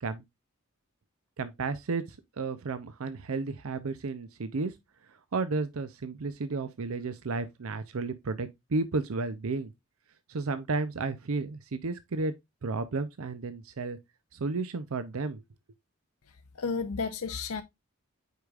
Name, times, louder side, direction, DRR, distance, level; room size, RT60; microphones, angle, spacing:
voice 1, 1.4-2.0 2.4-4.7 5.3-9.7 10.3-12.3 12.6-14.0 14.3-15.4, right 3 dB, 75° right, 0.6 m, -32 dB
voice 2, 16.3-17.6, left 4 dB, 85° left, 0.6 m, -33 dB
8.1 x 4.9 x 2.4 m
head